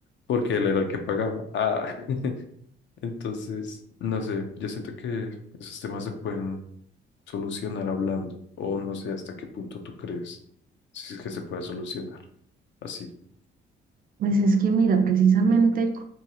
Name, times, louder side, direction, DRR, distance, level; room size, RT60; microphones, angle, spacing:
voice 1, 0.3-2.3 3.0-6.6 7.3-10.4 10.9-12.2 12.8-13.1, left 5 dB, 65° left, 0.5 m, -30 dB
voice 2, 14.2-16.0, right 4 dB, 45° right, 0.4 m, -20 dB
2.7 x 2.3 x 2.8 m
cardioid pair, 90°, 20 cm